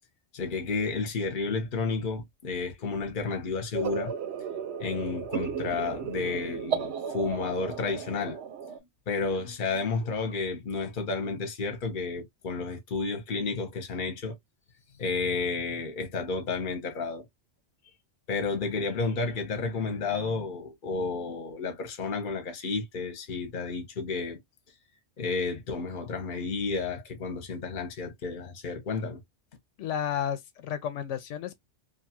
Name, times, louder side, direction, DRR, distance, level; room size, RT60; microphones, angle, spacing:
voice 1, 0.3-4.1 4.8-8.4 9.1-14.4 15.0-17.2 18.3-24.4 25.2-29.2, left 4 dB, 50° left, 0.9 m, -31 dB
sound 1, 3.7-8.8, right 7 dB, 70° right, 0.9 m, -34 dB
voice 2, 29.8-31.6, left 9 dB, 85° left, 0.9 m, -32 dB
2.6 x 2.3 x 2.7 m
omnidirectional pair, 1.2 m